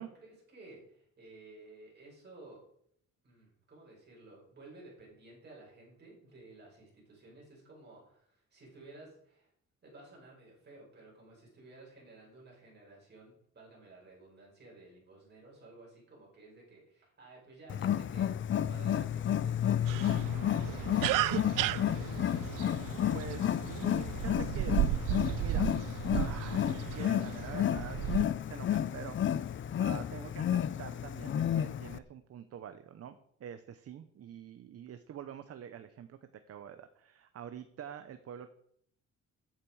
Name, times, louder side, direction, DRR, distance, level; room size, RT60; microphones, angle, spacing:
voice 1, 0.0-2.6 3.2-9.5 9.8-22.2 29.6-29.9, right 2 dB, 30° right, -3 dB, 5.9 m, -55 dB
Wild animals, 17.7-32.0, left 10 dB, 40° left, 0.5 m, -31 dB
sound 1, 19.9-28.2, right 16 dB, 80° right, 0.5 m, -35 dB
voice 2, 23.1-24.8 25.4-25.7 26.1-38.5, right 9 dB, 50° right, 10 dB, 0.8 m, -46 dB
14.0 x 8.9 x 4.8 m, 0.70 s
cardioid pair, 165°, 32 cm